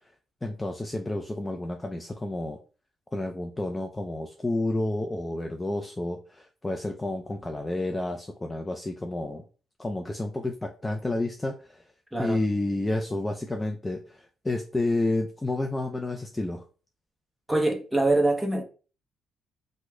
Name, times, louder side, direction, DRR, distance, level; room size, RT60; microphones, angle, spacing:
voice 1, 0.4-2.6 3.1-9.4 9.8-11.8 12.2-16.6, left 2 dB, 15° left, 0.4 m, -30 dB
voice 2, 12.1-12.4 17.5-18.6, right 2 dB, 5° right, 0.8 m, -24 dB
3.0 x 2.1 x 3.6 m
cardioid pair, 90°, 0 cm